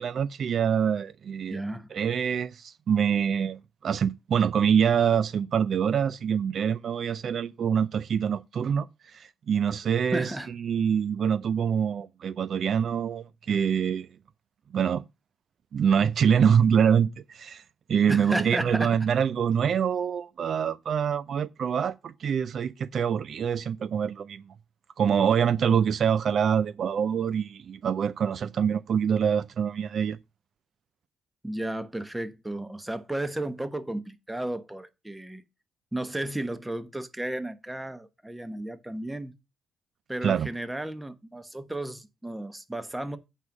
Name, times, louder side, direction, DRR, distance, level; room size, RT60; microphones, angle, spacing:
voice 1, 0.0-1.6 1.9-10.3 10.6-14.1 14.7-15.0 15.7-17.6 17.9-24.5 25.0-30.2 40.2-40.5, right 7 dB, 55° right, 0.4 m, -25 dB
voice 2, 1.5-1.9 10.1-10.5 18.1-19.0 31.4-35.4 35.9-39.3 40.1-43.2, right 1 dB, 10° right, 1.1 m, -33 dB
8.3 x 5.4 x 6.0 m
cardioid pair, 90°, 0 cm